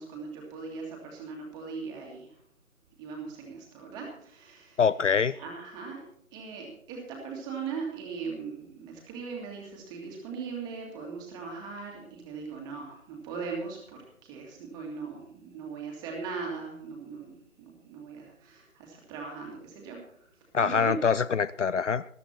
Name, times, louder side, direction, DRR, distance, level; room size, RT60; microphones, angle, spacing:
voice 1, 0.0-2.4 3.0-4.8 5.4-6.1 6.3-20.2 20.6-21.0, right 5 dB, 10° right, 0 dB, 2.1 m, -39 dB
voice 2, 4.8-5.4 20.5-22.0, left 6 dB, 60° left, 17 dB, 0.5 m, -24 dB
13.5 x 13.0 x 4.3 m, 0.67 s
figure-of-eight pair, 150°, 41 cm